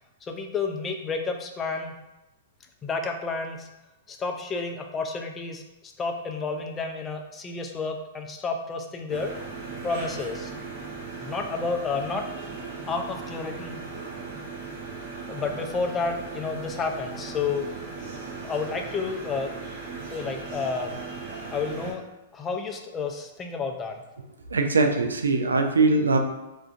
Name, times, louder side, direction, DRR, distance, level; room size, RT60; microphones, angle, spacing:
voice 1, 0.3-1.9 2.8-3.7 4.1-5.6 6.0-9.3 9.8-10.5 11.2-12.2 12.9-13.8 14.9-15.0 15.3-17.7 18.4-19.5 20.1-21.0 21.5-22.0 22.3-24.0, left 4 dB, 20° left, 3 dB, 0.3 m, -30 dB
sound 1, 9.1-21.9, right 4 dB, 50° right, 0.7 m, -38 dB
voice 2, 24.5-26.2, right 3 dB, 90° right, 5 dB, 0.3 m, -21 dB
2.4 x 2.2 x 2.4 m, 0.99 s
hypercardioid pair, 115°, 0 cm